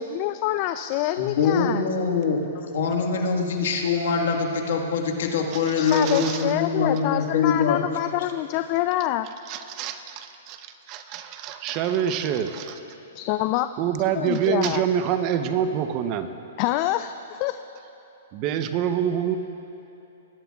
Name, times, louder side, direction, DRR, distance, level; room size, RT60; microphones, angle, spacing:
voice 1, 0.0-1.9 5.8-9.3 13.1-13.7 14.2-14.8 16.6-17.6, left 14 dB, 40° left, 10 dB, 0.3 m, -26 dB
voice 2, 1.2-7.8, left 5 dB, 70° left, 1 dB, 1.5 m, -24 dB
voice 3, 5.5-6.4 9.5-12.8 13.8-16.3 18.3-19.4, right 9 dB, 35° right, 9 dB, 0.7 m, -26 dB
20.5 x 11.0 x 2.3 m, 2.9 s
hypercardioid pair, 140°, 0 cm